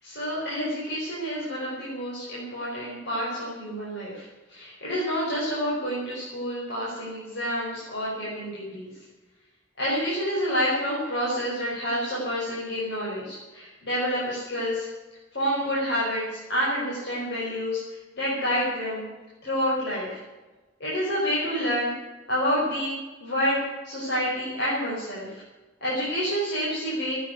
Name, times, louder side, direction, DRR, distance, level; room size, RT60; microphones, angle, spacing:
voice 1, 0.0-8.9 9.8-14.9 15.3-19.0 19.4-20.2 20.8-21.9 22.3-22.9 23.2-25.4 25.8-27.2, equal, 65° left, -7 dB, 5.4 m, -28 dB
16.0 x 9.5 x 9.5 m, 1.2 s
head